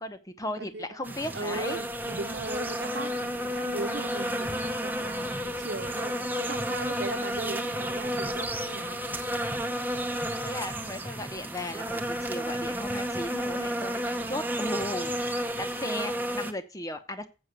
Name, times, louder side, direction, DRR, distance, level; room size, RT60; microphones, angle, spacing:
voice 1, 0.0-1.8 10.4-17.3, left 1 dB, 20° left, 0.9 m, -36 dB
sound 1, 1.0-16.5, equal, 10° right, 0.8 m, -32 dB
voice 2, 1.3-9.0, right 2 dB, 75° right, 1.1 m, -38 dB
7.6 x 6.3 x 7.8 m
head